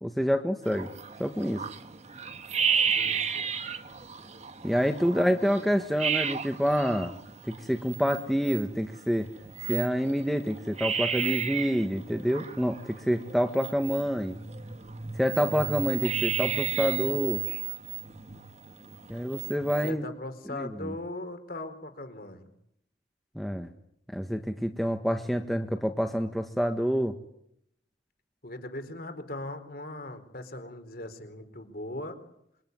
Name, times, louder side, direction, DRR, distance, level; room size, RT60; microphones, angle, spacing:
voice 1, 0.0-0.9 1.2-1.6 4.6-7.1 7.4-9.3 9.7-14.4 15.2-17.4 19.1-20.0 20.5-20.9 23.3-23.7 24.1-27.1, equal, ahead, 5 dB, 1.4 m, -27 dB
sound 1, 0.6-19.9, right 7 dB, 35° right, 1.6 m, -33 dB
voice 2, 3.0-3.5 5.1-5.5 15.2-15.7 19.8-22.5 28.4-32.2, left 1 dB, 50° left, 8 dB, 4.2 m, -40 dB
26.5 x 23.5 x 9.5 m, 0.75 s
head